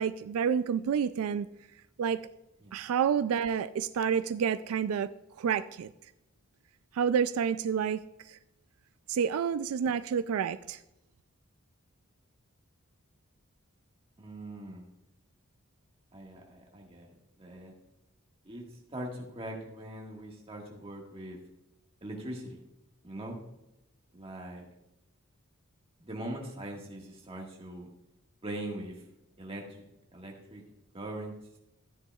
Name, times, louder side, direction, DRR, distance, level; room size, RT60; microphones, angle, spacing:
voice 1, 0.0-1.5 2.0-2.2 2.7-5.1 5.4-5.9 6.9-8.4 9.1-10.8, right 7 dB, 85° right, 13 dB, 0.3 m, -29 dB
voice 2, 14.2-14.9 16.1-17.1 17.4-17.7 18.4-18.6 18.9-21.4 22.0-22.6 23.0-23.4 24.1-24.6 26.0-27.9 28.4-29.0 29.4-29.7 30.1-30.6 30.9-31.3, right 1 dB, 25° right, -1 dB, 1.7 m, -41 dB
13.0 x 9.7 x 2.4 m, 0.90 s
head